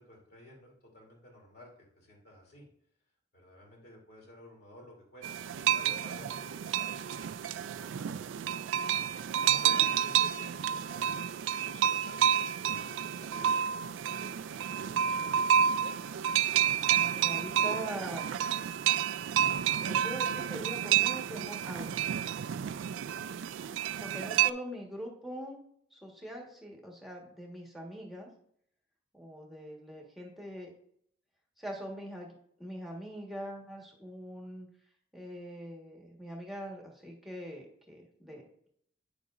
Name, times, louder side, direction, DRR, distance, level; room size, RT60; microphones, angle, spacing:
voice 1, 0.0-1.7 2.0-2.7 3.3-8.3 9.3-11.3 11.6-13.7 14.4-15.5, left 1 dB, 55° left, -1 dB, 2.7 m, -53 dB
sound 1, 5.2-24.5, right 9 dB, 80° right, 0.3 m, -30 dB
voice 2, 16.9-18.3 19.8-22.0 24.0-25.6 25.9-28.3 29.1-30.7 31.6-32.3 32.6-34.7 35.1-38.7, right 1 dB, ahead, -1 dB, 1.4 m, -42 dB
9.4 x 6.9 x 2.5 m, 0.67 s
head